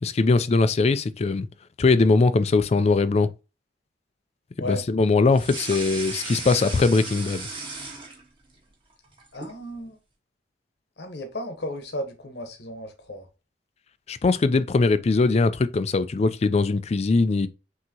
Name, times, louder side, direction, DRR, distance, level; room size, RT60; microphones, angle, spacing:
voice 1, 0.0-1.5 1.8-3.3 4.6-7.5 14.1-17.5, left 3 dB, 35° left, 0.4 m, -21 dB
sound 1, 5.3-8.5 8.9-9.6, right 3 dB, 30° right, 1.4 m, -35 dB
voice 2, 9.3-10.0 11.0-13.3, left 1 dB, 70° left, 1.0 m, -34 dB
6.0 x 2.8 x 2.8 m
head